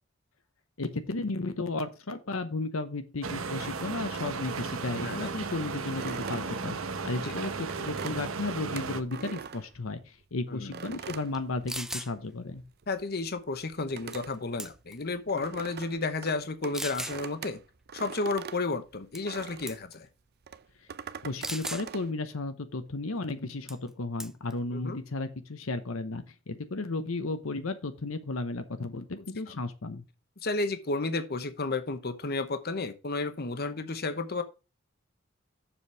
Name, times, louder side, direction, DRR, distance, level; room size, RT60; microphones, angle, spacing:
voice 1, 0.8-12.6 21.2-30.0, left 3 dB, 75° left, 0.9 m, -34 dB
sound 1, 3.2-9.0, right 4 dB, 75° right, 0.9 m, -35 dB
sound 2, 5.9-10.2 10.7-12.2 12.5-19.8 20.4-22.1, right 6 dB, 50° right, 0.5 m, -43 dB
voice 2, 10.5-10.8 12.9-17.6 17.9-20.1 24.7-25.0 29.5-29.6 30.4-34.4, left 3 dB, 50° left, 1.0 m, -32 dB
sound 3, 11.3-11.4 11.7-12.1 14.1-14.3 14.6-15.0 15.7-15.8 16.7-17.2 19.1-19.4 19.7-19.9 21.4-21.9 23.7-23.9 24.2-24.5, right 1 dB, ahead, 0.4 m, -37 dB
7.2 x 5.2 x 6.0 m
head